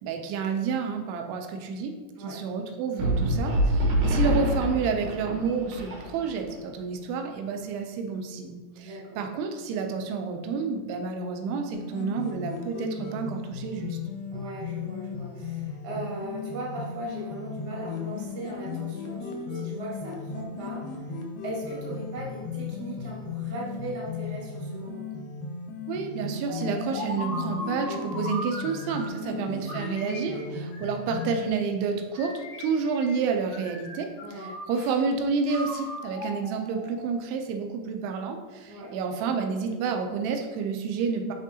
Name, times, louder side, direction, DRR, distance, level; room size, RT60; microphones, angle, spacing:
voice 1, 0.0-1.9 2.2-14.0 25.9-41.3, right 5 dB, 85° right, 5 dB, 2.7 m, -30 dB
sound 1, 3.0-6.5, equal, 70° right, 1.5 m, -26 dB
voice 2, 8.8-9.2 14.3-25.0 29.2-29.4 34.2-34.5 38.7-38.9, right 1 dB, 55° right, -5 dB, 1.1 m, -38 dB
sound 2, 11.7-31.5, left 5 dB, 75° left, 2.3 m, -36 dB
sound 3, 26.5-29.2 29.7-31.5 32.1-33.3 33.5-35.0 35.5-37.3, left 1 dB, 55° left, 2.9 m, -38 dB
10.5 x 3.5 x 2.8 m, 1.3 s
omnidirectional pair, 4.6 m